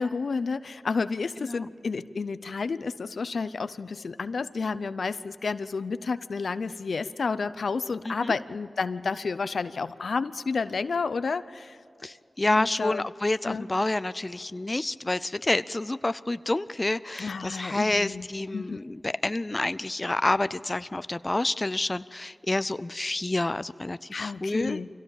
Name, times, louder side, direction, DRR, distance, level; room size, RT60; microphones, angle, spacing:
voice 1, 0.0-11.8 12.5-13.1 13.5-13.7 17.2-18.3 18.5-18.8 24.1-24.9, left 4 dB, 80° left, 14 dB, 0.6 m, -30 dB
voice 2, 12.0-24.8, left 2 dB, 35° left, 15 dB, 0.5 m, -28 dB
24.5 x 17.0 x 7.3 m, 2.6 s
cardioid pair, 45°, 0 cm